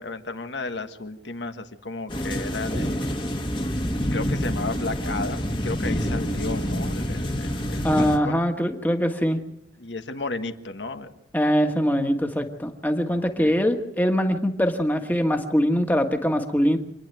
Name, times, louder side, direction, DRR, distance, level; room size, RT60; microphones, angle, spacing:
voice 1, 0.0-3.2 3.5-3.8 4.1-8.4 9.8-11.1 13.1-13.6, left 3 dB, 80° left, 7 dB, 1.5 m, -34 dB
sound 1, 2.1-8.2, equal, 25° left, 1.5 m, -27 dB
voice 2, 7.8-9.4 11.3-16.8, equal, 10° left, 5 dB, 1.5 m, -22 dB
27.0 x 10.5 x 9.2 m, 0.82 s
head